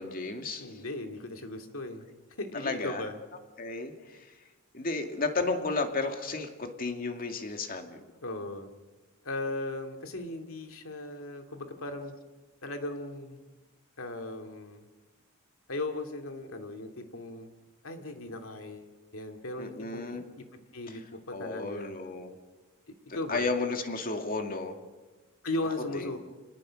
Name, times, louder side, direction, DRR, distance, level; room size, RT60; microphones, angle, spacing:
voice 1, 0.0-0.7 2.5-3.0 3.6-4.3 4.7-8.0 19.6-20.2 21.3-22.4 23.3-24.8 25.9-26.1, left 3 dB, 45° left, 5 dB, 2.3 m, -33 dB
voice 2, 0.6-3.2 8.2-8.7 9.2-12.1 12.6-13.4 14.0-14.9 15.7-17.5 17.8-22.0 22.9-23.5 25.4-26.2, left 2 dB, 75° left, 5 dB, 2.4 m, -37 dB
28.0 x 19.5 x 6.4 m, 1.2 s
head